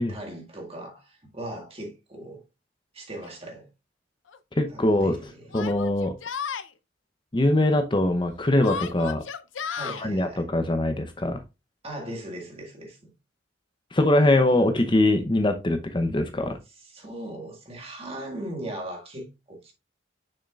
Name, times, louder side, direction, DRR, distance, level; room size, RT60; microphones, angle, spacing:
voice 1, 0.1-2.4 2.9-3.7 4.7-5.6 9.7-10.5 11.8-13.1 14.5-14.7 16.8-19.7, right 1 dB, 30° right, 1.9 m, -38 dB
Yell, 3.2-3.3 4.3-4.4 5.5-6.7 8.6-10.0, left 7 dB, 80° left, 0.6 m, -33 dB
voice 2, 4.6-5.2 5.5-6.1 7.3-9.2 10.0-11.4 13.9-16.6, left 1 dB, 25° left, 0.7 m, -22 dB
6.4 x 6.4 x 2.4 m
head